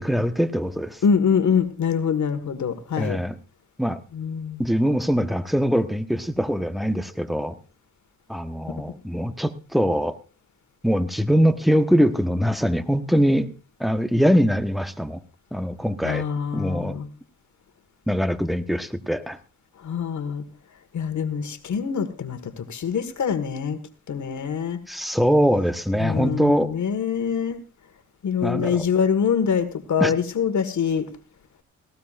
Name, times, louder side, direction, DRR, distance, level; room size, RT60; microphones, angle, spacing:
voice 1, 0.0-1.0 3.0-3.4 3.8-4.0 4.6-7.6 8.3-10.2 10.8-13.5 13.8-15.2 15.5-16.2 16.5-17.0 18.1-19.4 24.9-26.7 28.4-28.8 30.0-30.1, equal, ahead, 10 dB, 1.2 m, -22 dB
voice 2, 1.0-3.2 4.1-4.6 8.7-8.8 16.0-17.1 19.8-20.5 20.9-23.8 24.1-24.8 26.0-27.6 28.2-31.1, left 7 dB, 55° left, 9 dB, 1.8 m, -24 dB
18.0 x 15.0 x 2.5 m, 0.34 s
supercardioid pair, 55°, 34 cm